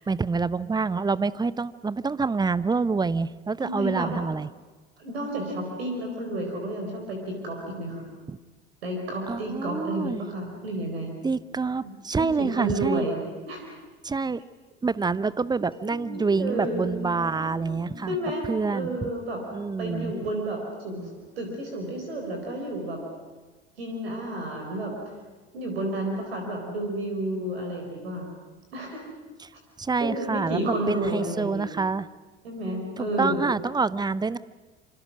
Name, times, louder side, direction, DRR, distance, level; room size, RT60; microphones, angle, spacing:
voice 1, 0.0-4.5 8.3-8.4 9.3-10.2 11.2-13.1 14.0-14.4 14.8-18.2 18.5-19.1 19.5-20.1 29.8-32.1 33.0-34.4, right 4 dB, 15° right, 18 dB, 0.7 m, -27 dB
voice 2, 3.6-4.1 5.0-8.1 8.8-11.1 11.8-13.7 16.4-16.9 18.1-19.4 19.8-21.1 21.4-23.0 23.8-24.9 25.5-28.3 28.7-29.0 30.0-31.7 32.4-33.5, right 1 dB, 70° right, 2 dB, 4.5 m, -31 dB
sound 1, 15.7-21.5, equal, 15° left, 4.1 m, -42 dB
26.5 x 26.0 x 6.2 m, 1.3 s
figure-of-eight pair, 65°, 32 cm